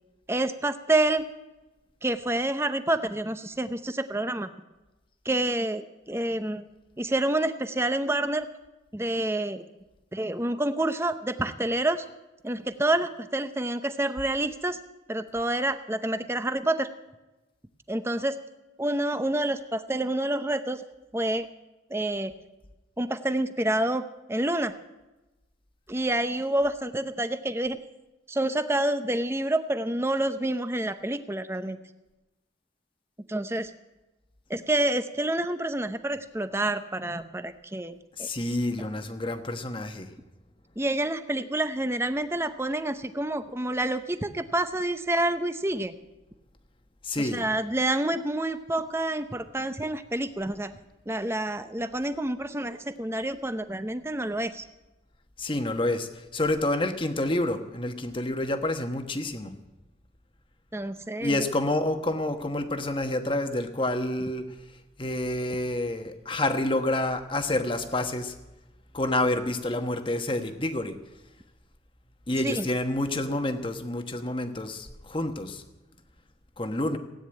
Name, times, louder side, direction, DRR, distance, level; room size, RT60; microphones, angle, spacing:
voice 1, 0.3-1.3 2.0-4.5 5.2-5.8 6.1-6.6 7.0-8.5 8.9-9.7 10.1-12.0 12.4-14.8 15.1-16.9 17.9-18.4 18.8-20.8 21.1-21.5 21.9-22.3 23.0-24.0 24.3-24.7 25.9-27.8 28.3-31.8 33.3-33.7 34.5-38.3 38.8-38.9 40.8-45.9 47.2-50.7 51.1-54.7 60.7-61.5 72.4-72.7, right 1 dB, 15° right, 10 dB, 0.7 m, -28 dB
voice 2, 38.2-40.1 47.0-47.4 55.4-59.5 61.2-64.5 65.0-68.3 68.9-71.0 72.3-75.6 76.6-77.0, left 1 dB, 25° left, 7 dB, 1.2 m, -28 dB
16.5 x 9.6 x 8.7 m, 1.1 s
head